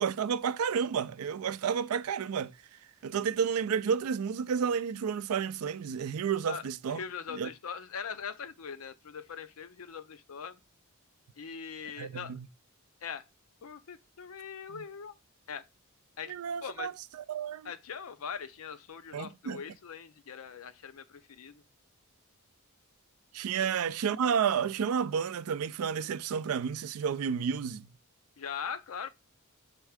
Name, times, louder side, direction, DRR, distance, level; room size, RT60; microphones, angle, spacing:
voice 1, 0.0-2.5 3.0-7.0 7.3-7.5 12.0-12.5 16.3-16.9 17.3-17.7 19.1-19.6 23.3-27.9, right 7 dB, 90° right, 0.4 m, -31 dB
voice 2, 6.9-10.6 11.4-12.3 13.0-13.2 13.6-15.2 15.5-15.7 16.2-16.3 16.6-16.9 17.6-21.6 23.6-23.7 28.4-29.1, left 7 dB, 80° left, 0.6 m, -41 dB
4.5 x 3.6 x 3.3 m
head